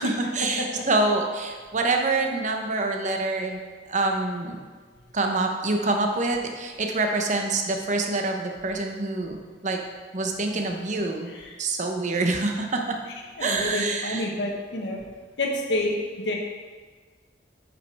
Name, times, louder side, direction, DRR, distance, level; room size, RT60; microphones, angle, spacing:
voice 1, 0.0-3.6 3.9-4.6 5.1-9.8 10.1-11.3 11.6-13.0 13.4-14.3, right 2 dB, 45° right, 3 dB, 0.9 m, -26 dB
voice 2, 13.4-15.0 15.4-15.9 16.2-16.4, left 1 dB, 85° left, 0 dB, 1.3 m, -28 dB
8.7 x 5.3 x 4.7 m, 1.5 s
head